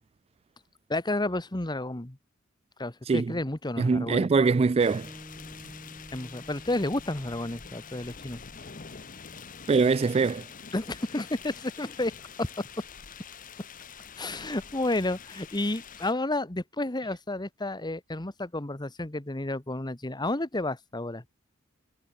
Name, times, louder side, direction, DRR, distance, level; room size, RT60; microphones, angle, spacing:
voice 1, 0.9-2.2 2.8-4.3 6.1-8.4 10.7-12.7 14.2-21.2, left 2 dB, 20° left, 1.3 m, -31 dB
voice 2, 3.8-5.1 9.7-10.5, right 4 dB, 30° right, 0.3 m, -23 dB
sound 1, 4.8-16.1, left 6 dB, 40° left, 1.1 m, -46 dB
Piano, 5.0-11.7, equal, 15° right, 4.5 m, -52 dB
head